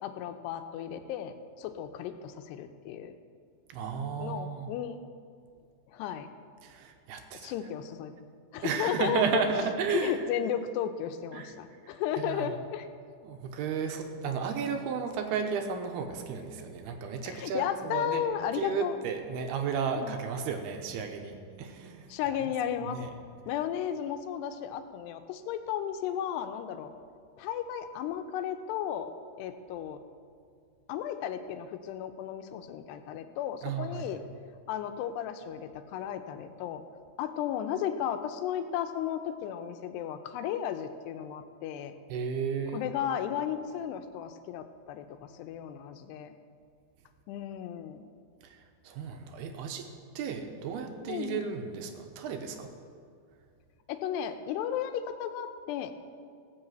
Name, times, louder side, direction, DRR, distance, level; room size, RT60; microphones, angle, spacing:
voice 1, 0.0-3.1 4.2-5.0 5.9-6.3 7.3-8.1 8.5-9.4 9.9-12.9 17.2-19.0 20.0-20.2 22.1-23.0 23.5-26.9 27.4-29.1 29.4-30.0 30.9-34.2 34.7-36.8 37.2-41.9 42.7-46.3 47.3-48.1 51.1-51.5 53.9-55.9, left 9 dB, 90° left, 8 dB, 2.9 m, -34 dB
voice 2, 3.7-4.7 6.6-7.5 8.6-10.2 11.3-11.5 12.2-12.6 13.2-18.2 18.6-22.1 22.4-22.5 22.9-23.1 33.6-34.1 42.1-42.8 48.5-48.6 48.8-49.9 50.2-52.7, right 6 dB, 80° right, 5 dB, 2.9 m, -33 dB
18.0 x 6.6 x 7.9 m, 2.3 s
omnidirectional pair, 4.7 m